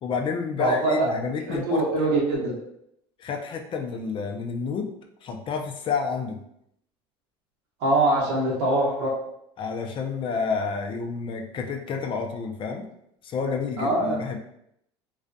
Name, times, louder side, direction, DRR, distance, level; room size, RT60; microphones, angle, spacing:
voice 1, 0.0-1.8 3.2-4.9 5.2-6.4 9.6-12.9 13.2-14.4, left 5 dB, 40° left, 3 dB, 0.4 m, -29 dB
voice 2, 0.6-1.1 1.5-2.5 7.8-9.1 13.8-14.2, right 2 dB, 70° right, -3 dB, 1.0 m, -23 dB
2.4 x 2.2 x 2.5 m, 0.76 s
supercardioid pair, 90°, 14 cm